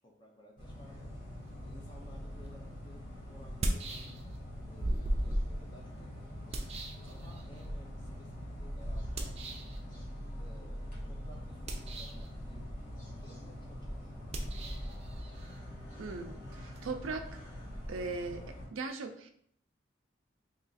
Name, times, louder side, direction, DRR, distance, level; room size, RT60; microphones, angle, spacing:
voice 1, 0.0-1.1 1.6-4.2 4.6-6.6 7.0-9.6 10.4-14.3, equal, 25° left, 0 dB, 0.6 m, -58 dB
sound 1, 0.6-18.7, equal, 40° left, 1.1 m, -42 dB
sound 2, 2.4-2.5 3.4-4.5 4.8-7.7 9.2-9.8 11.5-12.3 14.3-16.8, right 1 dB, 30° right, 0.4 m, -38 dB
voice 2, 16.0-17.3 17.9-19.3, right 3 dB, 90° right, 7 dB, 0.4 m, -39 dB
2.9 x 2.4 x 4.0 m, 0.66 s
head